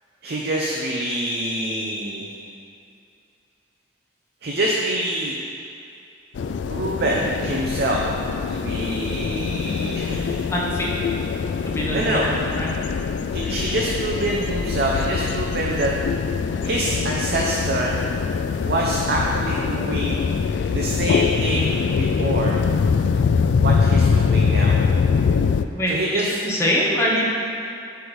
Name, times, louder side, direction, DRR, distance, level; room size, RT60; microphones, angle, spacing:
voice 1, 0.2-2.3 4.4-5.4 6.7-8.0 8.5-10.4 11.9-12.3 13.3-15.9 16.6-17.9 18.7-20.2 20.7-22.6 22.9-23.1 23.6-24.8 25.9-26.4, right 1 dB, 60° right, -3 dB, 0.7 m, -25 dB
sound 1, 6.4-25.7, left 5 dB, 75° left, 0.3 m, -23 dB
voice 2, 10.5-10.9 11.6-12.3 12.5-12.8 25.7-27.3, equal, 15° left, -5 dB, 1.1 m, -23 dB
8.0 x 3.4 x 6.2 m, 2.6 s
head